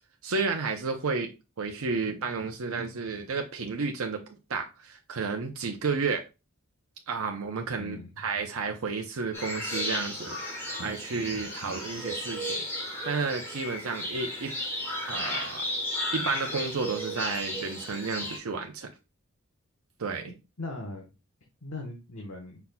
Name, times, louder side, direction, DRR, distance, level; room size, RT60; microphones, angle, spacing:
voice 1, 0.2-1.3 1.6-4.2 4.5-6.2 7.1-10.4 10.8-12.6 13.0-14.5 15.1-15.6 16.1-18.9 20.0-20.3, right 4 dB, 85° right, 0.6 m, -31 dB
voice 2, 7.8-8.1 20.2-21.1 21.6-22.6, left 2 dB, 90° left, 1.1 m, -39 dB
sound 1, 9.3-18.4, left 1 dB, 10° left, 1.3 m, -34 dB
5.6 x 4.1 x 2.2 m
head